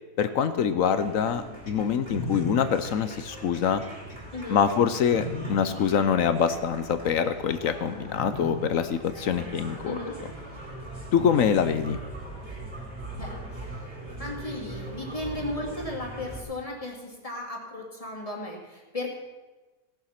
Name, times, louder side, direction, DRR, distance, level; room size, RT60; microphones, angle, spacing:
voice 1, 0.2-3.8 4.5-10.0 11.1-12.0, left 7 dB, 65° left, 11 dB, 1.0 m, -25 dB
sound 1, 0.8-16.4, right 1 dB, 45° right, 4.2 m, -41 dB
sound 2, 1.7-5.6 6.5-7.2 7.7-7.8 8.1-8.6 9.7-9.8 11.1-11.6 12.7-12.8, left 2 dB, 45° left, 2.2 m, -36 dB
voice 2, 9.8-10.2 13.1-13.4 13.7-13.9 14.2-19.1, left 1 dB, 20° left, -1 dB, 2.4 m, -35 dB
17.0 x 7.4 x 5.8 m, 1.2 s
omnidirectional pair, 1.8 m